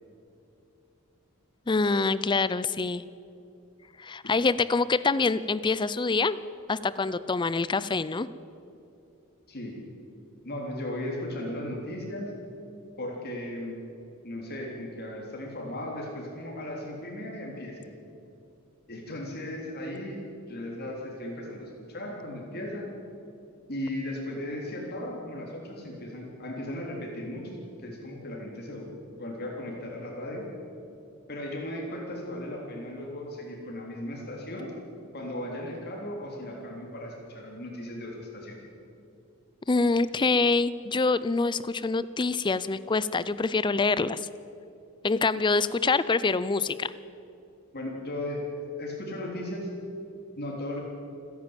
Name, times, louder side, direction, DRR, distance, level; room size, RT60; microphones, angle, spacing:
voice 1, 1.7-3.0 4.0-6.4 6.7-8.3 39.7-44.2 45.0-46.9, left 3 dB, 20° left, 17 dB, 0.4 m, -25 dB
voice 2, 10.4-12.3 13.0-13.8 14.2-17.9 18.9-22.9 23.7-28.9 29.2-30.4 31.3-34.7 35.1-38.6 47.7-48.4 48.8-49.7 50.4-50.8, left 1 dB, 45° left, -1 dB, 3.4 m, -36 dB
28.5 x 10.5 x 9.0 m, 2.7 s
head